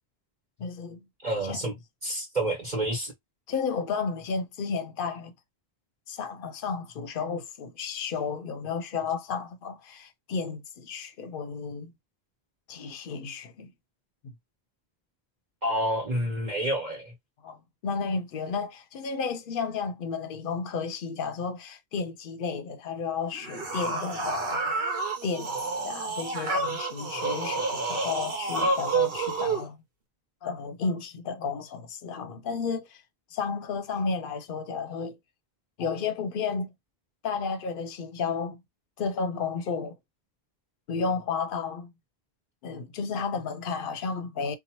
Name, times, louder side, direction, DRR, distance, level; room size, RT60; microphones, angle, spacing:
voice 1, 0.6-1.0 1.4-1.6 3.5-5.3 6.1-11.9 12.7-13.7 14.2-14.3 17.4-25.5 25.8-29.8 30.4-33.0 33.3-35.2 35.8-36.7 37.2-38.6 39.0-39.9 40.9-41.9 42.6-44.6, left 5 dB, 65° left, 0.7 m, -32 dB
voice 2, 1.2-1.7 2.0-3.1 15.6-17.1, right 1 dB, 45° right, 1.2 m, -28 dB
sound 1, 23.3-29.7, right 3 dB, 65° right, 0.9 m, -29 dB
2.8 x 2.1 x 2.8 m
omnidirectional pair, 1.1 m